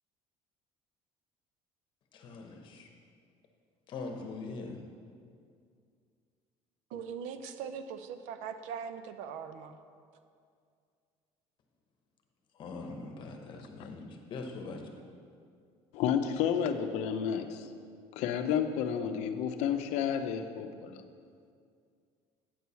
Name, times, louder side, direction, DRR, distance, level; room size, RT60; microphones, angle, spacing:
voice 1, 2.1-2.9 3.9-4.8 12.5-14.9, left 3 dB, 40° left, 3 dB, 1.0 m, -42 dB
voice 2, 6.9-9.7, right 7 dB, 85° right, 10 dB, 0.6 m, -40 dB
voice 3, 15.9-17.7 18.1-21.0, left 8 dB, 70° left, 8 dB, 0.6 m, -31 dB
9.1 x 4.7 x 6.9 m, 2.3 s
cardioid pair, 165°, 12 cm